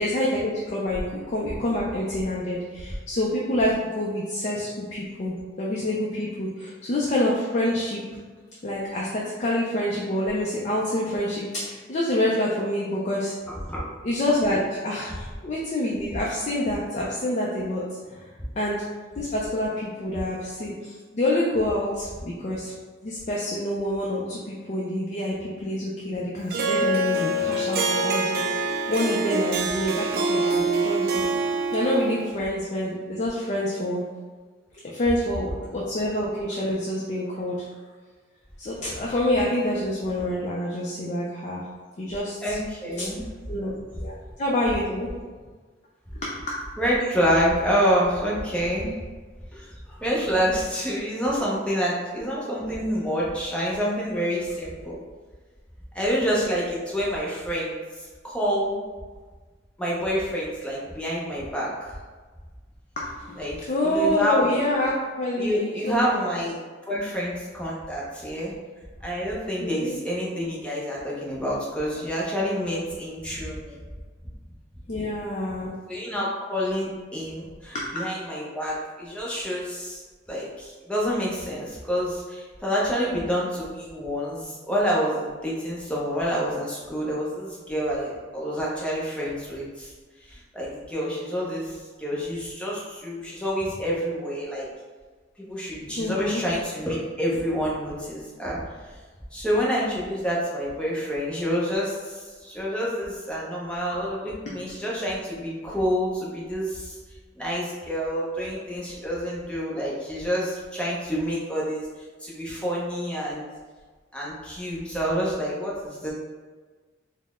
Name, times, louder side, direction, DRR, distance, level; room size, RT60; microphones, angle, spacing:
voice 1, 0.0-8.0 8.6-13.3 14.0-17.8 18.1-18.2 18.6-18.8 19.2-22.7 23.0-31.3 31.7-34.0 34.9-37.7 38.6-41.6 42.0-42.6 43.0-43.1 43.5-43.7 44.0-45.1 46.2-46.3 63.0-63.4 63.7-66.3 69.6-70.0 74.9-75.7 77.7-77.9 96.0-96.4 103.9-104.0, left 1 dB, 40° left, -4 dB, 0.4 m, -27 dB
Harp, 26.5-32.3, right 2 dB, 55° right, 0.3 m, -25 dB
voice 2, 42.4-43.3 46.8-48.9 49.5-55.0 55.9-57.7 58.2-58.8 59.8-62.0 63.4-64.5 65.4-66.6 66.9-68.5 69.0-73.8 75.9-89.9 90.3-94.7 95.4-98.6 99.3-107.0 107.4-111.9 112.2-113.4 114.1-116.1, equal, 5° left, -5 dB, 0.7 m, -28 dB
4.0 x 2.1 x 3.5 m, 1.4 s
head